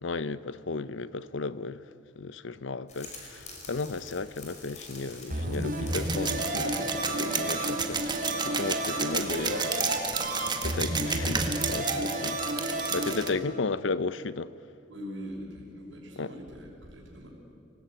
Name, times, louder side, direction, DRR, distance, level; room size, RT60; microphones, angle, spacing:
voice 1, 0.0-1.8 2.2-8.0 8.4-9.9 10.6-12.4 12.9-14.5 16.2-16.3, left 3 dB, 70° left, 0.7 m, -34 dB
sound 1, 2.9-7.9, left 2 dB, 40° left, 5.2 m, -48 dB
sound 2, 5.3-13.1, right 1 dB, 45° right, 4.0 m, -32 dB
sound 3, 5.9-13.3, right 5 dB, 25° right, 1.8 m, -32 dB
voice 2, 13.2-13.5 14.9-17.3, equal, 85° right, 6.1 m, -42 dB
25.0 x 19.0 x 9.2 m
head